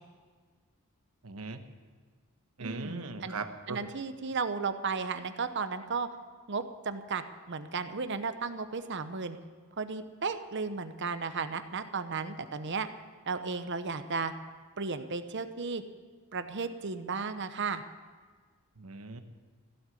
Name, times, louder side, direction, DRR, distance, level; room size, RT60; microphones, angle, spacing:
voice 1, 1.2-1.6 2.6-3.9 18.8-19.2, right 3 dB, 75° right, 8 dB, 1.2 m, -39 dB
voice 2, 2.6-3.4 3.7-6.1 6.5-9.4 9.8-12.9 13.3-14.3 14.8-15.8 16.3-17.8, right 4 dB, 55° right, 10 dB, 0.9 m, -34 dB
16.0 x 7.9 x 9.7 m, 1.5 s
head